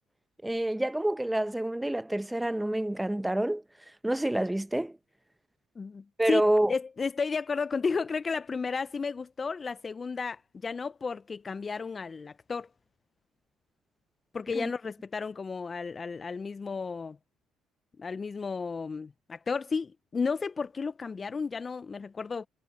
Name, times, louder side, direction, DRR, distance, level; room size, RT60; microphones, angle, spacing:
voice 1, 0.4-3.6 4.0-5.0 6.2-6.7 14.5-14.7, right 1 dB, 5° right, 0.7 m, -27 dB
voice 2, 5.8-6.4 6.7-12.7 14.3-17.2 18.0-22.5, left 5 dB, 30° left, 0.4 m, -33 dB
cardioid pair, 95°, 0 cm